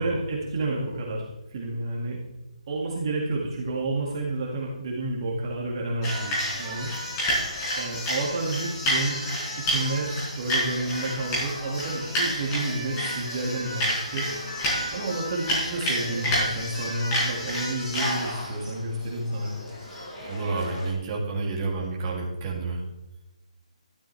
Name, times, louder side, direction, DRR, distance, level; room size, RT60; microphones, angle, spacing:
voice 1, 0.0-2.2 2.7-6.9 7.8-9.2 9.6-14.3 14.9-19.6, right 2 dB, 35° right, -2 dB, 2.0 m, -30 dB
sound 1, 6.0-20.9, equal, 20° left, 4.9 m, -30 dB
voice 2, 20.2-22.8, right 3 dB, 20° right, -4 dB, 2.6 m, -29 dB
12.5 x 12.5 x 3.3 m, 0.98 s
hypercardioid pair, 170°, 4 cm